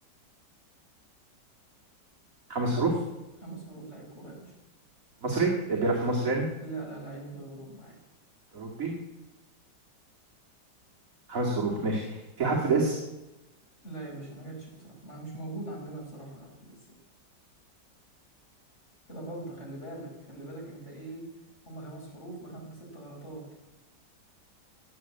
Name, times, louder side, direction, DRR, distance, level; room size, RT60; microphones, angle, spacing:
voice 1, 2.5-3.0 5.2-6.5 8.5-8.9 11.3-13.0, right 3 dB, 50° right, -1 dB, 2.7 m, -27 dB
voice 2, 3.4-4.5 6.6-8.0 13.8-16.8 19.1-21.3 21.7-23.6, right 2 dB, 40° left, -2 dB, 5.9 m, -42 dB
19.0 x 7.7 x 8.7 m, 1.0 s
omnidirectional pair, 1.9 m